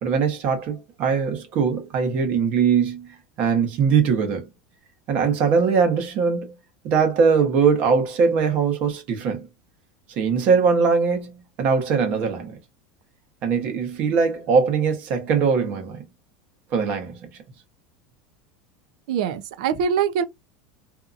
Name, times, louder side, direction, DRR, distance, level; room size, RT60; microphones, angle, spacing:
voice 1, 0.0-3.1 3.4-4.5 5.1-6.5 6.8-9.5 10.2-12.6 13.4-16.0 16.7-17.3, right 5 dB, 40° right, 1.0 m, -21 dB
voice 2, 19.1-20.2, right 7 dB, 70° right, 0.5 m, -23 dB
2.7 x 2.5 x 2.5 m
supercardioid pair, 165°, 4 cm